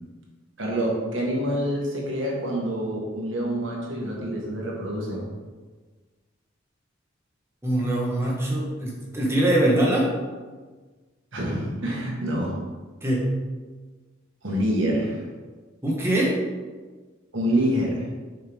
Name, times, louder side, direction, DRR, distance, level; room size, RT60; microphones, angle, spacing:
voice 1, 0.6-5.3 11.3-12.6 14.4-15.2 17.3-18.0, equal, 90° right, -2 dB, 1.8 m, -26 dB
voice 2, 7.6-10.1 13.0-13.3 15.8-16.4, right 1 dB, 15° right, -3 dB, 1.5 m, -23 dB
6.6 x 5.4 x 3.7 m, 1.4 s
head